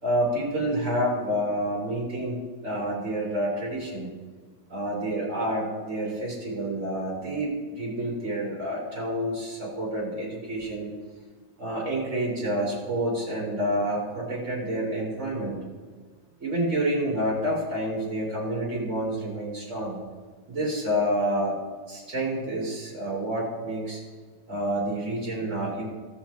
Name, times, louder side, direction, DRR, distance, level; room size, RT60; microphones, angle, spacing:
voice 1, 0.0-2.4 2.6-4.1 4.7-10.9 11.6-15.6 16.4-20.0 20.5-21.5 21.9-24.0 24.5-25.8, right 1 dB, 45° right, -4 dB, 3.6 m, -28 dB
16.5 x 5.7 x 4.3 m, 1.5 s
omnidirectional pair, 1.8 m